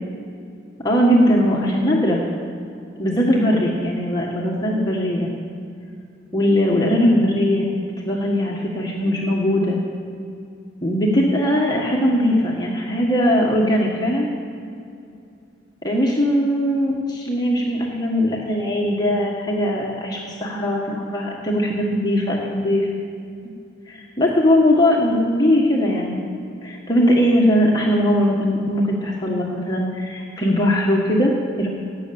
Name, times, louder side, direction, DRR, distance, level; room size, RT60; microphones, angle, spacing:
voice 1, 0.8-2.2 3.0-5.3 6.3-7.7 8.0-9.8 10.8-14.3 15.8-22.9 23.9-26.2 26.6-31.7, equal, 20° left, -3 dB, 1.5 m, -20 dB
17.5 x 6.6 x 8.7 m, 2.5 s
head